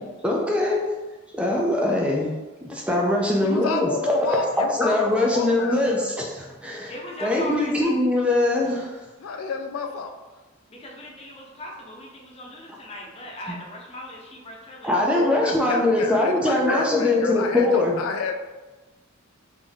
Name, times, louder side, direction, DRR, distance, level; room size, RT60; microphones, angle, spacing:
voice 1, 0.2-0.9 1.3-2.3 2.6-4.4 4.8-6.9 7.2-8.9 14.8-18.0, left 2 dB, 5° right, -2 dB, 0.4 m, -22 dB
voice 2, 3.4-6.1 9.2-10.1 15.0-18.4, left 4 dB, 90° left, 5 dB, 0.4 m, -30 dB
voice 3, 6.9-8.0 10.7-15.0, left 1 dB, 30° left, -2 dB, 0.7 m, -39 dB
3.5 x 2.6 x 3.5 m, 1.2 s
head